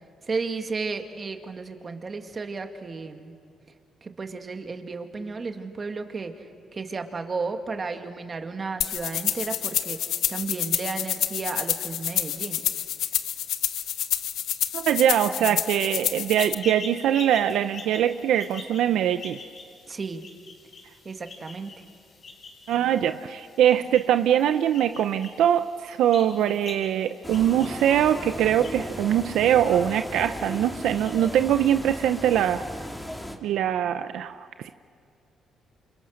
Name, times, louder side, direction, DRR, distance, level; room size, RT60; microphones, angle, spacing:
voice 1, 0.2-3.3 4.0-12.6 15.4-15.6 19.9-20.2 21.0-21.8, right 4 dB, 35° right, 5 dB, 2.1 m, -33 dB
sound 1, 8.8-16.5, left 10 dB, 80° left, 0.9 m, -28 dB
voice 2, 14.7-19.4 22.7-32.6 33.4-34.7, right 10 dB, 80° right, 10 dB, 0.6 m, -23 dB
sound 2, 16.3-32.0, left 4 dB, 55° left, 6.0 m, -45 dB
sound 3, 27.2-33.4, left 1 dB, 10° left, 2.3 m, -36 dB
28.5 x 27.0 x 6.5 m, 2.4 s
cardioid pair, 90°, 0 cm